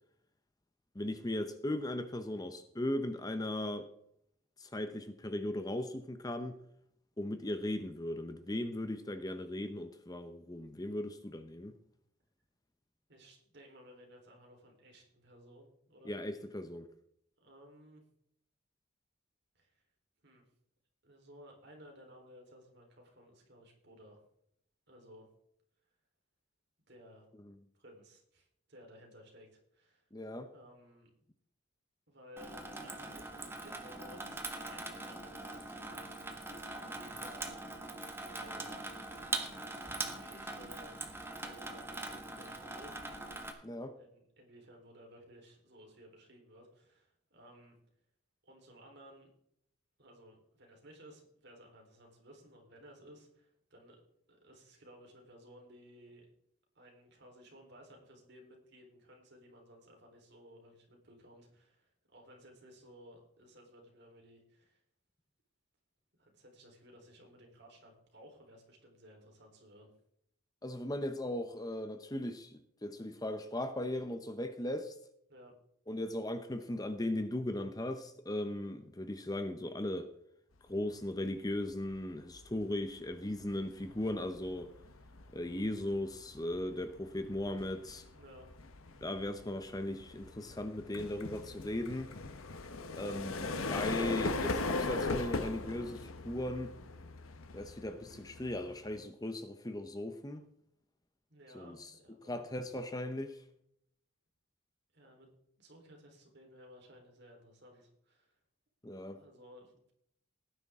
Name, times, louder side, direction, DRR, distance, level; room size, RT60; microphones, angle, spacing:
voice 1, 0.9-3.9 4.6-6.6 7.2-11.7 16.0-16.9 27.5-27.6 30.1-30.5 43.6-43.9 70.6-75.0 75.9-80.1 80.7-84.7 85.3-88.0 89.0-92.1 93.0-96.7 97.5-100.4 101.5-101.9 102.3-103.4 108.8-109.2, left 1 dB, 20° left, 0.8 m, -38 dB
voice 2, 13.1-16.1 17.4-18.0 19.5-19.9 20.2-20.5 21.0-24.2 24.9-25.3 26.9-27.3 27.8-30.1 30.5-31.1 32.1-37.7 38.1-38.7 39.8-41.0 41.4-43.0 43.8-47.8 48.4-49.3 50.0-54.0 54.3-56.3 56.7-64.8 66.2-69.9 75.3-75.5 88.1-88.5 101.3-102.4 104.9-108.4 109.1-109.9, equal, 55° right, 3.9 m, -57 dB
Water tap faucet / Sink (filling or washing), 32.4-43.5, right 2 dB, 10° right, 1.5 m, -42 dB
sound 1, 81.6-81.9 82.3-99.0, left 3 dB, 90° left, 1.1 m, -40 dB
18.0 x 10.0 x 3.7 m
head